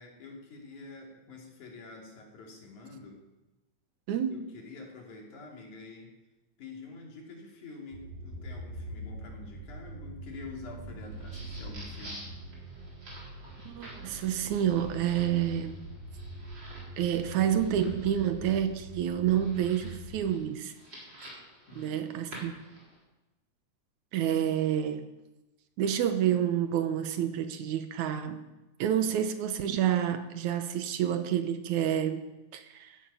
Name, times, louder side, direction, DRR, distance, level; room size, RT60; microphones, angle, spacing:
voice 1, 0.0-3.2 4.3-6.2 6.6-12.3 21.7-22.1, left 3 dB, 75° left, 0 dB, 4.2 m, -47 dB
sound 1, 7.9-20.2, right 1 dB, 55° right, 6.2 m, -43 dB
sound 2, 11.0-23.0, right 1 dB, 35° right, 4.6 m, -50 dB
voice 2, 13.7-15.8 17.0-20.7 21.7-22.6 24.1-25.1 25.8-28.4 28.8-32.9, right 10 dB, 75° right, 9 dB, 2.3 m, -29 dB
15.0 x 13.0 x 5.6 m, 1.0 s
omnidirectional pair, 3.5 m